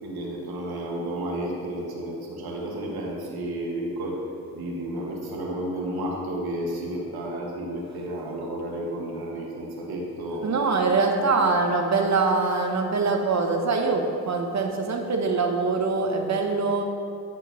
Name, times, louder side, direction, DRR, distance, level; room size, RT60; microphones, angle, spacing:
voice 1, 0.0-4.2 4.5-10.5, right 1 dB, 55° right, -2 dB, 1.9 m, -32 dB
voice 2, 10.4-16.8, right 4 dB, 40° right, 3 dB, 1.3 m, -23 dB
9.5 x 3.7 x 6.4 m, 2.6 s
supercardioid pair, 50°, 43 cm